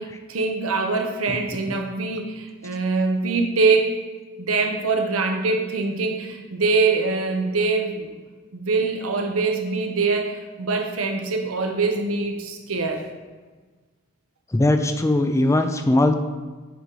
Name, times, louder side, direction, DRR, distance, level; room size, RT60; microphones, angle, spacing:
voice 1, 0.0-3.9 4.4-8.1 8.5-13.0, right 4 dB, 80° right, 3 dB, 0.9 m, -23 dB
voice 2, 14.5-16.2, left 1 dB, 15° left, 7 dB, 0.4 m, -20 dB
8.2 x 3.9 x 4.8 m, 1.4 s
head